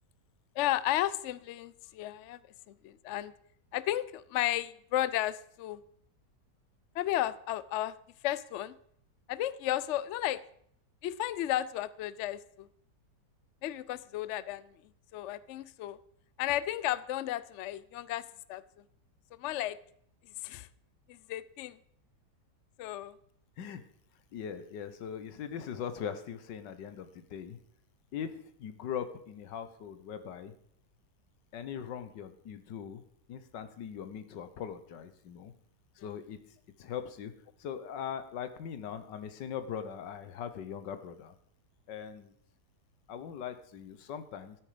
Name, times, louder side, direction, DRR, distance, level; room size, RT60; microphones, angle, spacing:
voice 1, 0.6-2.4 2.7-3.3 3.7-5.8 6.9-7.9 8.2-8.8 9.3-10.4 11.0-12.7 13.6-14.8 15.1-16.0 16.4-18.6 19.4-19.8 20.4-20.7 21.1-21.8 22.8-23.1 36.0-36.1, left 13 dB, 75° left, 17 dB, 0.6 m, -33 dB
voice 2, 24.3-27.6 28.1-30.5 31.5-33.0 33.3-35.5 36.0-36.4 36.8-37.3 37.6-41.3 41.9-42.3 43.1-44.6, left 8 dB, 90° left, 11 dB, 1.7 m, -40 dB
13.0 x 9.2 x 5.0 m, 0.67 s
omnidirectional pair, 1.9 m